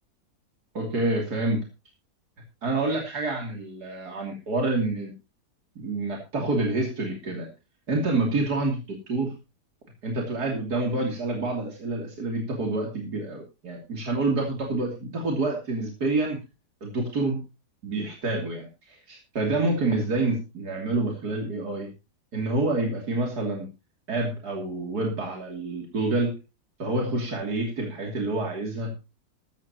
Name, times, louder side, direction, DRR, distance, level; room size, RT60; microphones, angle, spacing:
voice 1, 0.7-1.7 2.6-5.1 5.8-7.5 7.9-9.3 10.0-16.4 16.8-17.4 17.8-21.9 22.3-23.7 24.1-26.3 26.8-28.9, right 2 dB, 80° right, 0 dB, 3.5 m, -27 dB
15.5 x 13.5 x 3.0 m, 0.29 s
omnidirectional pair, 1.7 m